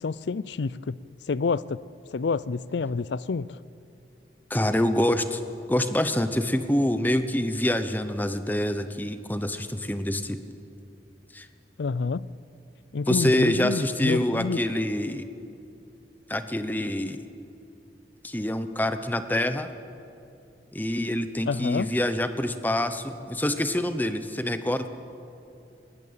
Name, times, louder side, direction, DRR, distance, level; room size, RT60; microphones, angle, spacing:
voice 1, 0.0-1.0 1.3-1.8 2.1-3.6 11.8-12.3 12.9-14.6 21.5-21.9, left 4 dB, 85° left, 19 dB, 0.5 m, -28 dB
voice 2, 4.5-5.4 5.7-10.4 11.3-11.5 13.1-15.2 16.3-17.2 18.2-19.7 20.7-24.9, left 1 dB, 10° left, 10 dB, 0.9 m, -26 dB
19.5 x 17.5 x 8.7 m, 2.7 s
head